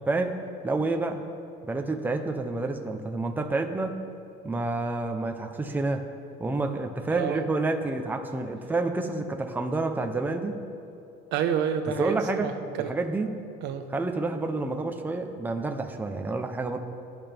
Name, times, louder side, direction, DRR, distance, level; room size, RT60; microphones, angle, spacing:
voice 1, 0.1-0.4 0.6-1.2 1.6-4.0 4.4-6.1 6.4-10.6 12.0-12.5 12.9-13.4 13.9-16.8, right 3 dB, 10° right, 5 dB, 0.8 m, -29 dB
voice 2, 7.1-7.4 11.3-13.0 13.6-13.9, right 8 dB, 70° right, 7 dB, 1.2 m, -29 dB
22.5 x 11.0 x 3.5 m, 2.6 s
cardioid pair, 150°, 19 cm